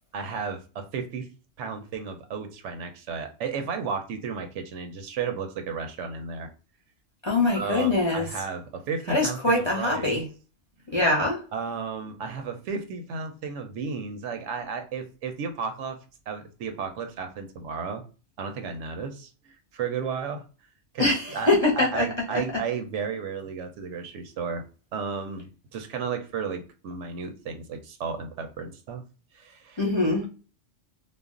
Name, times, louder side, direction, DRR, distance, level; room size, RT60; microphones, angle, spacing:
voice 1, 0.1-1.3 1.6-6.5 7.5-10.1 11.5-16.0 16.3-18.0 18.4-20.4 20.9-24.6 24.9-29.0 29.3-29.8, right 5 dB, 90° right, 0.9 m, -33 dB
voice 2, 7.2-8.3 9.1-10.3 10.9-11.4 21.0-22.4 29.8-30.3, left 2 dB, 35° left, 0.5 m, -23 dB
2.4 x 2.0 x 3.6 m
omnidirectional pair, 1.2 m